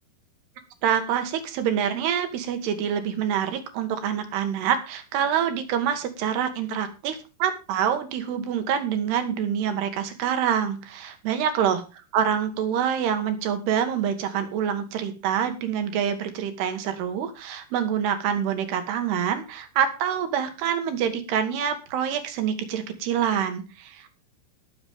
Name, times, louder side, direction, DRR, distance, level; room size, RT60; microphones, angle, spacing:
voice 1, 0.8-11.8 12.1-24.1, right 8 dB, 70° right, 8 dB, 3.4 m, -26 dB
21.0 x 7.1 x 3.6 m, 0.31 s
omnidirectional pair, 5.3 m